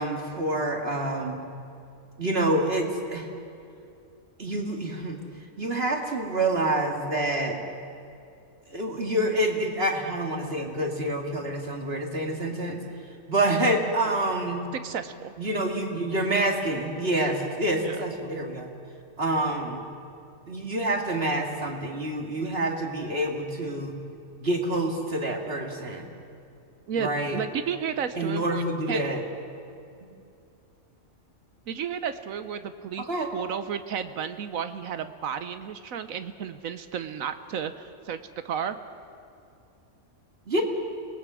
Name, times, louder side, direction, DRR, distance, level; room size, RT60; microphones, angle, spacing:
voice 1, 0.0-1.4 2.2-3.3 4.4-5.2 5.6-7.6 8.7-12.8 13.3-14.7 15.4-18.7 19.2-19.8 20.5-24.0 24.4-26.1 26.9-27.4 28.1-29.2 33.1-33.3 40.5-40.6, right 1 dB, 45° right, 2 dB, 2.4 m, -27 dB
voice 2, 14.8-15.3 17.8-18.0 26.9-29.0 31.7-33.1 33.3-38.2 38.4-38.8, right 7 dB, 75° right, 10 dB, 1.2 m, -32 dB
27.0 x 19.5 x 6.2 m, 2.6 s
omnidirectional pair, 1.4 m